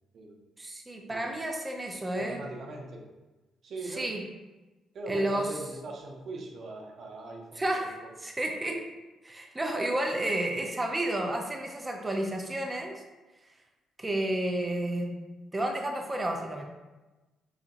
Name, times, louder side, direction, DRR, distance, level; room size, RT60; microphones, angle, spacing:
voice 1, 0.6-2.4 3.9-4.2 5.1-5.5 7.6-8.8 9.2-12.9 14.0-15.1 15.5-16.6, right 1 dB, 20° right, 2 dB, 0.6 m, -31 dB
voice 2, 2.2-3.1 3.6-4.1 4.9-8.1, right 2 dB, 60° right, 1 dB, 0.7 m, -41 dB
4.9 x 2.7 x 2.5 m, 1.1 s
cardioid pair, 90°, 0 cm